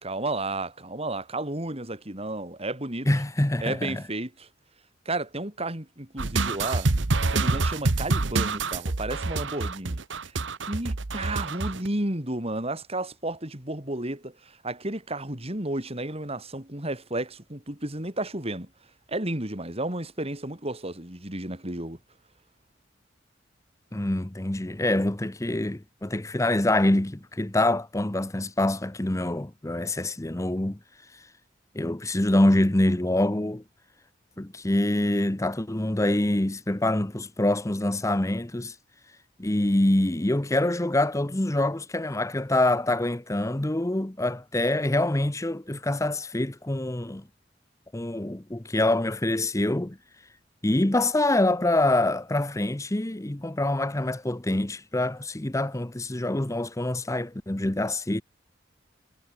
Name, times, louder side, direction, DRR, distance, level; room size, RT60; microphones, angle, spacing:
voice 1, 0.0-3.1 3.6-4.5 5.0-6.9 7.3-10.3 10.7-18.7 19.1-22.0, right 2 dB, 35° right, 5.1 m, -32 dB
voice 2, 3.1-4.0 23.9-30.8 31.7-33.6 34.4-38.7 39.4-47.2 47.9-50.0 50.6-58.2, left 1 dB, 15° left, 0.9 m, -25 dB
sound 1, 6.2-11.9, right 3 dB, 85° right, 1.2 m, -26 dB
head